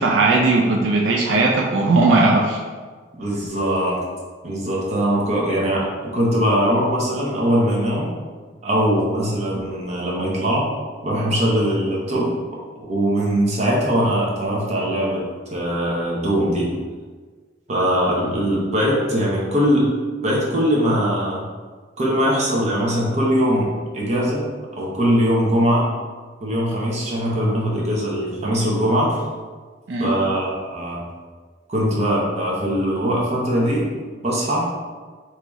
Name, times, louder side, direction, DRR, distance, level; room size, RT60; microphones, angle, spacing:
voice 1, 0.0-2.6 29.9-30.1, right 3 dB, 85° right, 0 dB, 0.4 m, -17 dB
voice 2, 3.1-4.0 4.4-8.1 8.6-10.7 11.0-12.3 12.9-15.2 15.5-16.7 17.7-19.9 20.2-21.4 22.0-24.4 24.8-25.9 26.4-29.2 30.0-31.0 31.7-33.9 34.2-34.7, equal, 40° right, -4 dB, 0.8 m, -21 dB
3.0 x 2.9 x 3.5 m, 1.5 s
head